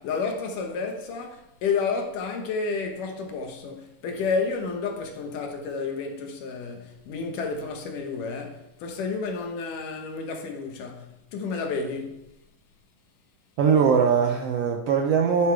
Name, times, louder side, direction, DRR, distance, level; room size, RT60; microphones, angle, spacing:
voice 1, 0.0-12.3, left 4 dB, 75° left, 2.7 m, -31 dB
voice 2, 13.6-15.5, right 6 dB, 85° right, 1.3 m, -21 dB
12.5 x 9.1 x 3.4 m
omnidirectional pair, 3.8 m